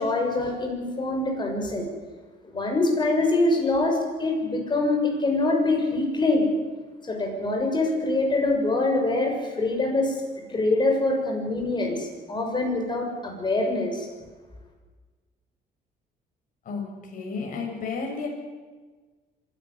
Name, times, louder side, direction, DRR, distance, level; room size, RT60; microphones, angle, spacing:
voice 1, 0.0-1.9 2.5-6.5 7.1-10.2 10.5-14.1, left 2 dB, 25° left, 2 dB, 6.5 m, -24 dB
voice 2, 17.1-18.3, left 4 dB, 55° left, 1 dB, 6.7 m, -31 dB
25.5 x 12.0 x 9.8 m, 1.4 s
cardioid pair, 110°, 17 cm